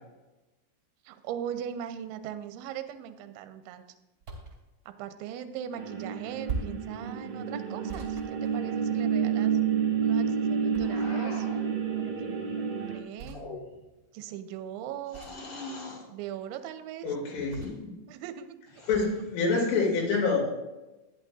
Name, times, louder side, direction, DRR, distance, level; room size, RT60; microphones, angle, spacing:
voice 1, 1.0-3.8 4.9-9.6 10.0-11.5 11.9-13.4 14.1-15.3 16.1-17.2 18.1-18.6 19.0-19.1, right 9 dB, 85° right, 8 dB, 2.9 m, -40 dB
sound 1, 4.2-4.6 6.5-6.9 7.9-9.1 10.7-11.3 13.2-13.4 15.1-15.5 17.5-17.9 18.9-19.2, right 4 dB, 30° right, 2.5 m, -39 dB
sound 2, 5.7-13.0, right 7 dB, 65° right, 1.6 m, -29 dB
sound 3, 10.8-11.7 13.2-14.0 15.1-16.1 17.3-17.7 18.7-19.4, left 2 dB, 55° left, 1.7 m, -43 dB
voice 2, 17.0-17.9 18.9-20.4, left 4 dB, 80° left, -2 dB, 5.1 m, -27 dB
14.0 x 11.0 x 2.5 m, 1.1 s
omnidirectional pair, 5.5 m